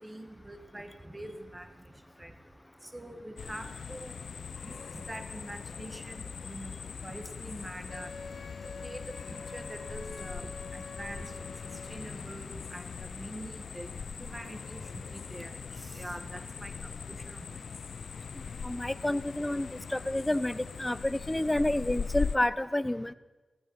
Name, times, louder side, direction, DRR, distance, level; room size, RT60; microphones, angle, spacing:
voice 1, 0.0-1.7 2.2-2.3 2.9-4.2 4.6-6.7 7.0-8.1 8.8-11.5 11.9-13.9 14.2-14.8 15.1-17.5, right 1 dB, 15° right, 6 dB, 1.7 m, -44 dB
sound 1, 3.4-22.4, left 6 dB, 75° left, 0.4 m, -41 dB
Wind instrument woodwind instrument, 7.9-12.0, left 4 dB, 60° left, 1.1 m, -46 dB
voice 2, 18.6-23.1, left 1 dB, 10° left, 16 dB, 0.5 m, -29 dB
17.5 x 14.0 x 5.8 m, 1.2 s
wide cardioid pair, 120°, 0 cm